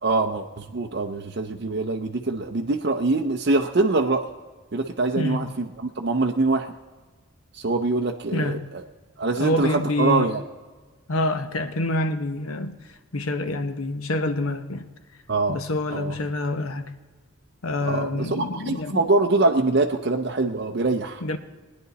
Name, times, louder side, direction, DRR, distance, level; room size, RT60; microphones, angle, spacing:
voice 1, 0.0-4.2 4.7-6.7 7.5-8.8 9.2-10.4 15.3-15.6 15.9-16.2 17.8-21.2, right 3 dB, 50° right, 0.6 m, -24 dB
voice 2, 9.4-10.3 11.1-12.7 13.1-14.9 15.5-16.9 17.6-19.0 21.2-21.4, left 2 dB, 85° left, 0.9 m, -26 dB
20.0 x 9.9 x 4.0 m
head